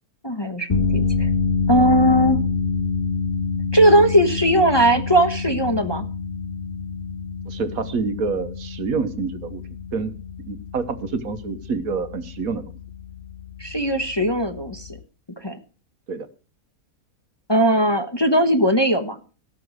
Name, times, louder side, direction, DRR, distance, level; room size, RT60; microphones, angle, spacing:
voice 1, 0.2-1.3 1.7-2.4 3.7-6.0 13.6-14.9 15.4-15.6 17.5-19.2, right 1 dB, 20° left, 6 dB, 1.0 m, -19 dB
sound 1, 0.7-15.0, left 4 dB, 35° left, 1.5 m, -27 dB
voice 2, 7.5-9.6 9.9-10.1 10.4-12.6 16.1-16.3, right 4 dB, 70° right, 10 dB, 1.6 m, -27 dB
17.5 x 6.9 x 6.5 m, 0.37 s
omnidirectional pair, 1.6 m